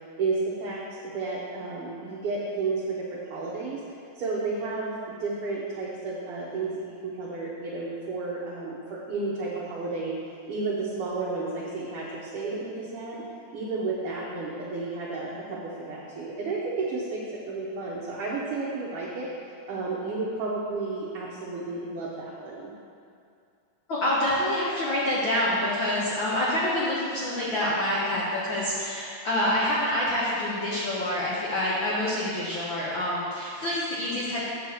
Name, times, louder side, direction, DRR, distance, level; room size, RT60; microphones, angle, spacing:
voice 1, 0.2-3.0 3.3-3.8 4.1-4.9 5.2-10.1 10.5-13.3 13.5-19.3 19.7-22.7, right 3 dB, 65° right, -6 dB, 1.5 m, -32 dB
voice 2, 23.9-34.4, left 1 dB, 65° left, -7 dB, 1.3 m, -27 dB
7.8 x 4.6 x 7.0 m, 2.4 s
omnidirectional pair, 3.4 m